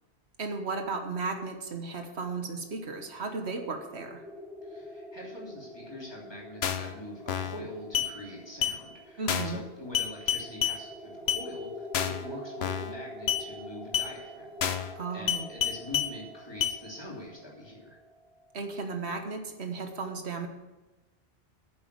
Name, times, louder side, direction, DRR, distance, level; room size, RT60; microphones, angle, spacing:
voice 1, 0.4-4.2 9.2-9.6 15.0-15.5 18.5-20.5, right 4 dB, 85° right, 5 dB, 1.5 m, -35 dB
sound 1, 2.4-19.0, equal, ahead, 1.4 m, -46 dB
voice 2, 4.6-18.0, left 1 dB, 25° left, -4 dB, 3.1 m, -44 dB
sound 2, 6.6-6.9 7.3-7.6 7.9-8.1 8.6-8.8 9.3-9.6 9.9-10.8 11.3-11.4 11.9-12.2 12.6-12.9 13.3-13.4 13.9-14.1 14.6-14.9 15.3-16.1 16.6-16.8, left 9 dB, 80° left, 1.0 m, -28 dB
9.2 x 7.1 x 8.3 m, 1.1 s
omnidirectional pair, 1.1 m